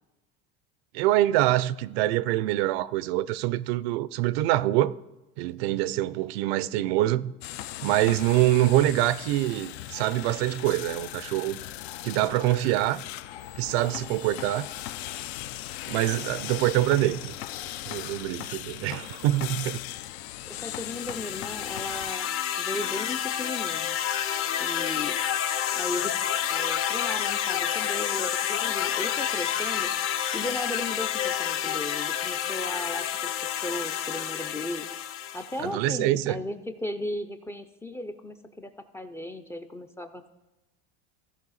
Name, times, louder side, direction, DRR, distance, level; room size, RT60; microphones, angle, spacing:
voice 1, 0.9-4.9 5.4-7.3 7.8-11.6 12.0-13.0 13.6-14.7 15.9-17.3 17.9-19.8 35.6-36.4, right 15 dB, 75° right, 0.5 m, -25 dB
sound 1, 7.4-22.1, left 14 dB, 85° left, 0.5 m, -38 dB
sound 2, 20.5-35.6, left 10 dB, 45° left, 0.6 m, -29 dB
voice 2, 20.5-22.3 22.6-24.0 24.6-25.2 25.7-26.2 26.5-29.9 30.3-34.9 35.3-40.3, left 1 dB, 10° left, 0.3 m, -36 dB
15.5 x 5.4 x 4.0 m
supercardioid pair, 130°, 31 cm